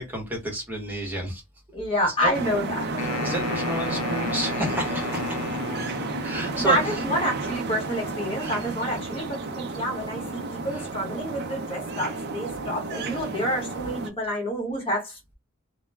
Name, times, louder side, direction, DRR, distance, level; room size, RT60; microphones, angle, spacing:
voice 1, 0.0-1.4 2.2-2.3 3.2-5.4 6.2-7.1 8.4-8.6 10.8-10.9, right 1 dB, 10° right, 1.0 m, -30 dB
voice 2, 1.7-2.8 6.5-15.3, equal, 25° left, 1.0 m, -28 dB
sound 1, 2.3-14.1, right 3 dB, 50° right, 0.4 m, -32 dB
Wind instrument woodwind instrument, 2.9-6.4, left 7 dB, 90° left, 0.3 m, -34 dB
2.2 x 2.1 x 3.2 m
head